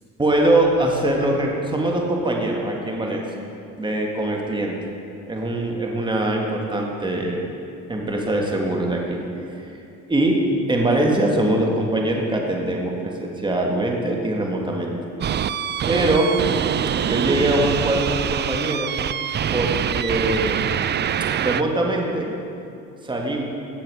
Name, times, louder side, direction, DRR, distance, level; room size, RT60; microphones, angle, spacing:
voice 1, 0.2-3.2 3.8-4.8 5.3-7.4 7.9-9.7 10.1-10.4 10.7-14.9 15.9-16.3 17.0-18.9 19.5-20.8 21.4-22.3 23.0-23.4, right 1 dB, 15° right, 0 dB, 1.7 m, -22 dB
sound 1, 15.2-21.6, right 9 dB, 35° right, 0.4 m, -24 dB
16.5 x 7.4 x 4.8 m, 2.6 s
cardioid pair, 85°, 31 cm